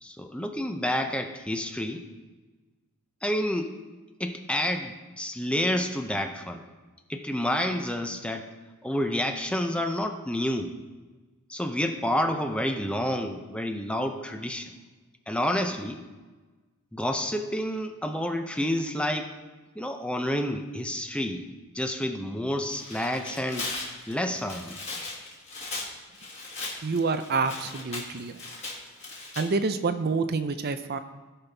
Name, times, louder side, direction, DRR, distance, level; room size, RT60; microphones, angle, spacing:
voice 1, 0.0-2.0 3.2-3.7 4.2-6.6 7.1-8.5 8.8-10.7 11.5-14.7 15.3-16.0 16.9-19.3 19.8-21.5 21.7-23.7 24.1-24.8, left 1 dB, 5° left, 5 dB, 0.5 m, -29 dB
Tearing, 22.6-29.4, left 2 dB, 30° left, 2.0 m, -38 dB
voice 2, 26.8-28.4 29.4-31.0, right 4 dB, 45° right, 10 dB, 0.5 m, -27 dB
17.0 x 5.7 x 3.4 m, 1.3 s
head